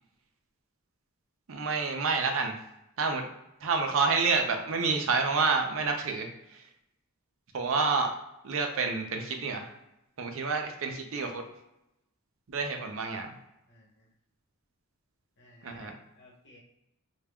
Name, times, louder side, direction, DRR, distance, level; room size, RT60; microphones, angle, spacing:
voice 1, 1.5-2.5 3.0-3.2 3.6-6.7 7.5-8.1 8.4-9.7 10.2-11.4 12.5-13.4 15.6-15.9, right 4 dB, 65° right, 4 dB, 0.5 m, -28 dB
voice 2, 13.7-14.1 15.4-16.6, left 2 dB, 50° left, -3 dB, 1.0 m, -57 dB
5.1 x 2.3 x 2.3 m, 0.87 s
head